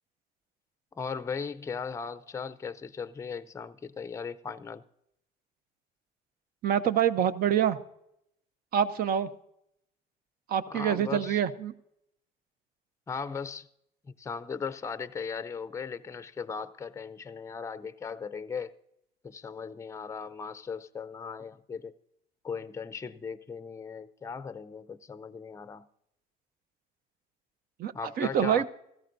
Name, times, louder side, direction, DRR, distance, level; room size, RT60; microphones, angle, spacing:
voice 1, 1.0-4.8 10.7-11.4 13.1-13.7 14.1-18.7 19.2-21.9 22.4-25.9 27.9-28.6, left 5 dB, 15° left, 0.5 m, -38 dB
voice 2, 6.6-7.8 8.7-9.3 10.5-11.7 27.8-28.7, right 9 dB, 65° right, 0.7 m, -26 dB
16.5 x 13.5 x 2.6 m
cardioid pair, 110°, 17 cm